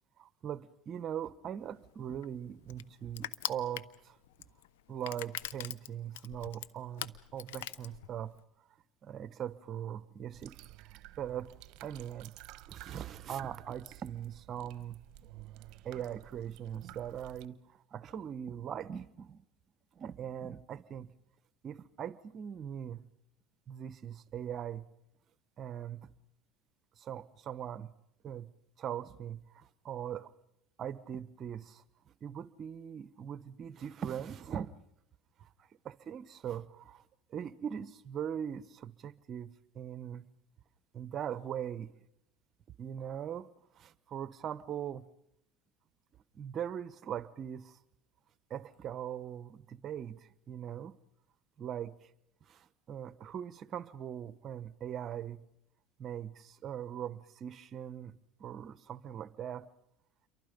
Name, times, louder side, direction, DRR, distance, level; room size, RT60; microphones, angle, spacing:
voice 1, 0.2-4.2 4.9-8.3 9.0-10.5 11.2-12.3 12.7-15.0 15.8-19.4 19.9-21.1 21.6-23.0 23.7-24.8 25.6-26.1 27.0-27.9 28.2-28.5 28.8-30.3 30.8-31.8 32.2-34.7 35.4-37.0 37.3-40.3 40.9-41.9 42.8-43.5 43.7-45.1 46.3-47.8 48.5-50.2 50.5-50.9 51.6-52.1 52.4-55.4 56.0-58.1 58.4-59.6, right 9 dB, 40° right, 15 dB, 1.2 m, -41 dB
Crushing, 1.6-8.4, left 13 dB, 90° left, 0.8 m, -43 dB
sound 1, 10.3-17.5, right 17 dB, 65° right, 1.0 m, -52 dB
28.5 x 23.5 x 5.3 m, 0.82 s
supercardioid pair, 105°, 0 cm